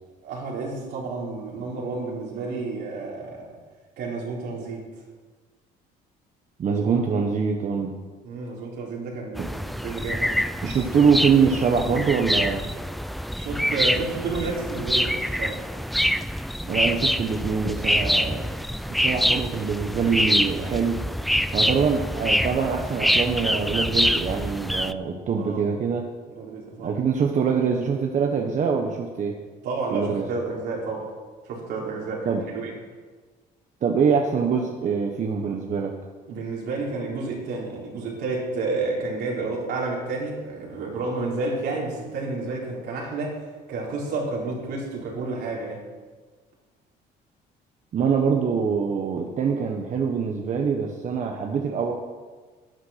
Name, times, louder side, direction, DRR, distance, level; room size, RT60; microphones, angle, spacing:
voice 1, 0.2-3.5 4.0-4.8 6.7-7.0 8.2-10.4 13.3-15.7 25.3-25.7 26.3-26.9 29.6-31.1 31.4-32.8 36.3-43.4 43.7-45.8, right 3 dB, 75° right, -3 dB, 4.2 m, -30 dB
voice 2, 6.6-7.9 9.4-9.5 10.6-12.7 16.6-18.5 18.9-21.0 21.5-26.1 26.8-29.4 29.9-30.2 32.2-32.4 33.8-35.9 47.9-51.9, right 6 dB, 45° right, 2 dB, 1.2 m, -24 dB
sound 1, 9.3-24.9, equal, ahead, 0.4 m, -25 dB
12.0 x 9.6 x 5.9 m, 1.4 s
cardioid pair, 110°, 17 cm